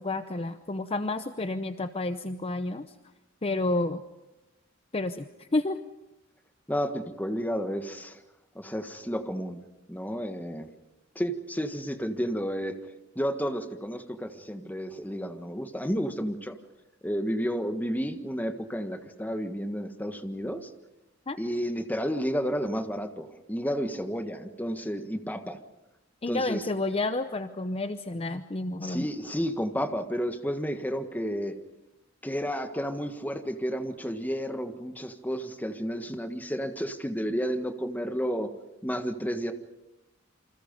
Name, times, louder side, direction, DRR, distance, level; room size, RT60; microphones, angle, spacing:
voice 1, 0.0-2.9 3.4-4.0 4.9-5.8 21.3-21.4 26.2-29.1, left 2 dB, 30° left, 10 dB, 0.8 m, -30 dB
voice 2, 6.7-8.2 8.5-9.6 9.9-10.7 11.1-12.8 13.1-16.6 17.0-20.7 21.4-25.6 26.3-26.7 28.8-31.5 32.2-38.5 38.8-39.5, equal, 10° left, 7 dB, 1.5 m, -31 dB
28.0 x 26.0 x 5.3 m, 0.95 s
head